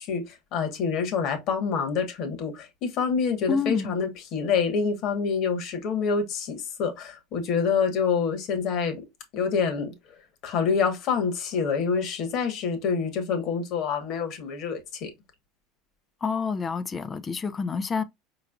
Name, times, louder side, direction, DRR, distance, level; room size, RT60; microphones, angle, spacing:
voice 1, 0.0-9.0 9.3-9.9 10.4-15.1, left 6 dB, 50° left, 1.4 m, -27 dB
voice 2, 3.5-3.9 16.2-18.0, left 5 dB, 25° left, 0.4 m, -28 dB
4.8 x 3.2 x 2.4 m
supercardioid pair, 125°, 0 cm